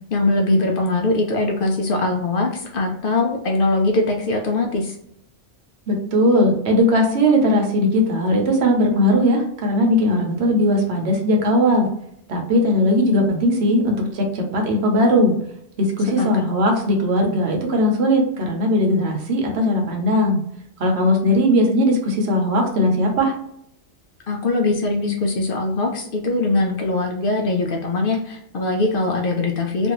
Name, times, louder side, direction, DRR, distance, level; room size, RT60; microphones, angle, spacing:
voice 1, 0.1-4.9 16.2-16.4 24.3-29.9, left 2 dB, 60° left, 1 dB, 0.6 m, -21 dB
voice 2, 5.9-11.9 12.3-15.3 15.8-20.4 20.8-23.4, equal, 70° right, 1 dB, 1.0 m, -18 dB
2.6 x 2.3 x 2.9 m, 0.71 s
omnidirectional pair, 1.2 m